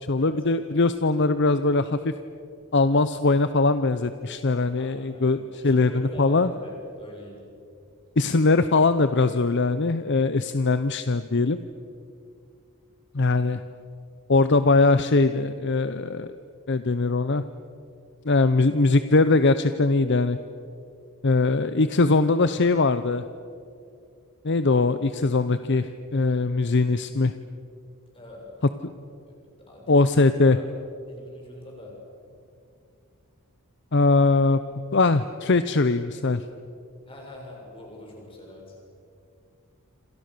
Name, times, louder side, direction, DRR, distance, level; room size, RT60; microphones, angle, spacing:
voice 1, 0.0-2.1 2.7-6.5 8.2-11.6 13.1-13.6 14.3-16.3 16.7-17.4 18.3-20.4 21.2-23.2 24.4-27.3 29.9-30.6 33.9-34.6 34.9-36.4, left 3 dB, 50° left, 12 dB, 0.7 m, -21 dB
voice 2, 4.8-7.5 28.1-28.6 29.3-30.2 30.5-30.7 31.1-32.0 37.1-38.8, left 1 dB, 25° left, -1 dB, 7.2 m, -44 dB
28.0 x 27.0 x 6.8 m, 2.5 s
head